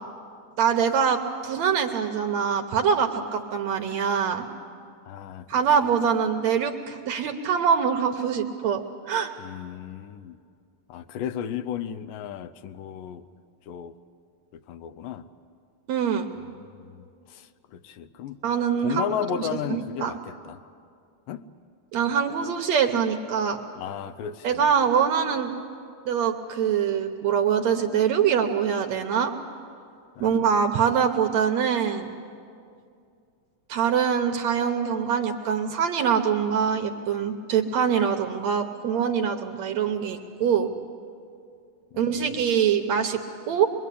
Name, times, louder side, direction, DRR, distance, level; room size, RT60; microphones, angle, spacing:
voice 1, 0.6-4.5 5.5-9.3 15.9-16.3 18.4-19.1 19.4-20.1 21.9-23.6 24.4-25.5 26.1-29.3 30.2-32.1 33.7-40.7 42.0-43.2 43.5-43.7, right 7 dB, 65° right, 5 dB, 1.9 m, -24 dB
voice 2, 5.1-5.6 9.4-10.4 10.9-13.3 13.7-14.0 14.5-15.3 16.4-18.4 18.8-20.6 21.3-21.5 23.8-24.7 30.2-30.5 41.9-42.4, left 9 dB, 85° left, 9 dB, 2.4 m, -35 dB
25.5 x 22.0 x 8.4 m, 2.3 s
omnidirectional pair, 3.9 m